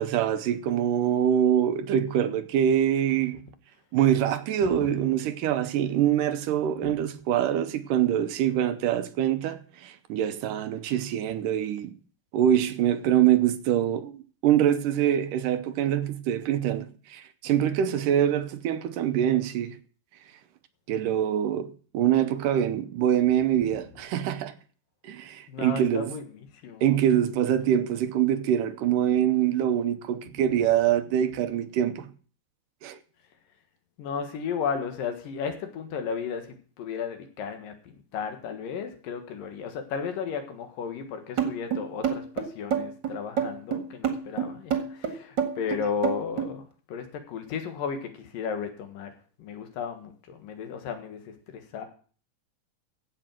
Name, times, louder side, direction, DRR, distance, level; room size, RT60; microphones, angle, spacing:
voice 1, 0.0-3.4 3.9-12.0 12.3-19.8 20.9-24.5 25.0-26.1 26.8-32.1 32.8-33.0, right 10 dB, 80° right, 2.4 m, -24 dB
voice 2, 25.5-26.2 26.6-27.0 34.0-46.6 46.9-49.1 49.4-51.9, left 6 dB, 85° left, 3.3 m, -34 dB
sound 1, 41.4-46.5, right 8 dB, 40° right, 1.9 m, -27 dB
15.5 x 5.7 x 7.6 m
omnidirectional pair, 3.8 m